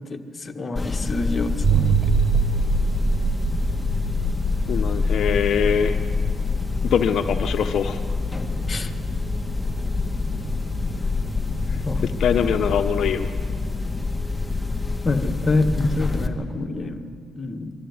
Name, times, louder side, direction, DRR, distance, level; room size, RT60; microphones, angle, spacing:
voice 1, 0.1-2.0 8.7-8.9 11.8-12.0 15.0-17.7, left 2 dB, 30° left, 4 dB, 1.6 m, -26 dB
sound 1, 0.8-16.3, left 4 dB, 10° left, 1.7 m, -26 dB
sound 2, 1.6-13.3, right 8 dB, 65° right, 0.7 m, -27 dB
voice 2, 4.7-6.0 6.9-8.0 12.2-13.3, left 7 dB, 70° left, 7 dB, 0.8 m, -22 dB
23.0 x 13.5 x 9.3 m, 2.2 s
cardioid pair, 90°, 0 cm